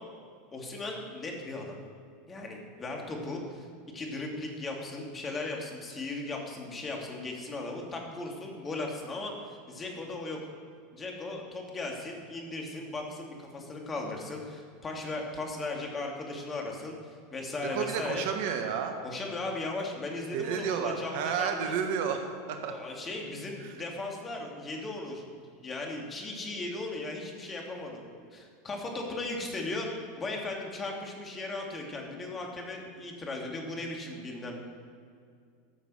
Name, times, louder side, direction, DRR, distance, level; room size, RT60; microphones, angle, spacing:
voice 1, 0.5-1.8 2.3-3.7 3.9-10.4 10.9-17.0 17.3-18.3 19.0-21.7 22.6-29.9 30.2-34.6, left 2 dB, 25° left, 0 dB, 2.8 m, -37 dB
voice 2, 17.7-18.9 20.3-22.8, right 7 dB, 60° right, 6 dB, 1.3 m, -31 dB
13.5 x 7.2 x 6.5 m, 2.2 s
hypercardioid pair, 85°, 0 cm